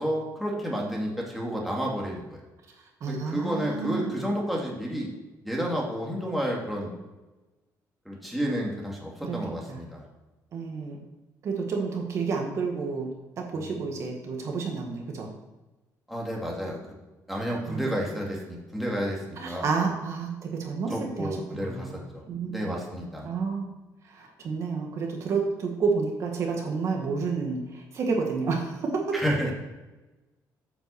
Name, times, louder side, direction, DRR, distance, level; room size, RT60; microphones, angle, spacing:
voice 1, 0.0-2.4 3.1-5.1 5.4-6.9 8.1-10.0 13.5-13.8 16.1-16.8 17.3-19.6 20.9-22.2 22.5-23.3 29.1-29.5, equal, ahead, -3 dB, 2.2 m, -31 dB
voice 2, 3.0-4.1 9.2-9.4 9.7-9.8 10.5-11.0 11.4-13.1 13.4-15.3 17.7-18.0 19.4-22.0 22.3-22.7 23.2-23.7 24.1-29.2, right 4 dB, 45° right, 1 dB, 1.6 m, -30 dB
9.3 x 6.0 x 6.9 m, 1.1 s
cardioid pair, 170°, 7 cm